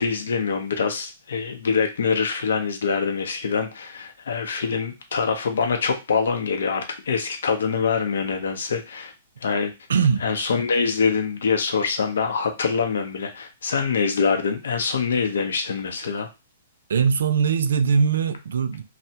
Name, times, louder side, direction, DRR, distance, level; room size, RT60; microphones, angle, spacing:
voice 1, 0.0-9.1 9.4-9.7 10.2-16.3, left 5 dB, 90° left, 0.6 m, -24 dB
voice 2, 9.9-10.2 16.9-18.8, right 6 dB, 85° right, 0.3 m, -21 dB
3.3 x 2.1 x 2.7 m
hypercardioid pair, 170°, 0 cm